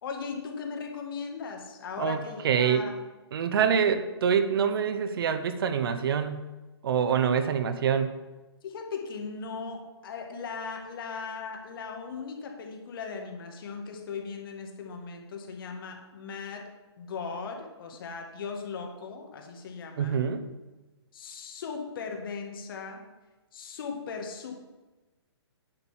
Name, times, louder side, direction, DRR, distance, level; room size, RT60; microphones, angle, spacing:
voice 1, 0.0-3.0 8.6-16.7 17.0-20.3 21.1-23.0 23.5-24.5, left 5 dB, 50° left, 3 dB, 1.8 m, -38 dB
voice 2, 2.0-2.9 3.3-6.5 6.8-8.1 20.0-20.4, right 7 dB, 55° right, 9 dB, 0.8 m, -26 dB
9.9 x 4.0 x 7.3 m, 1.2 s
hypercardioid pair, 130°, 14 cm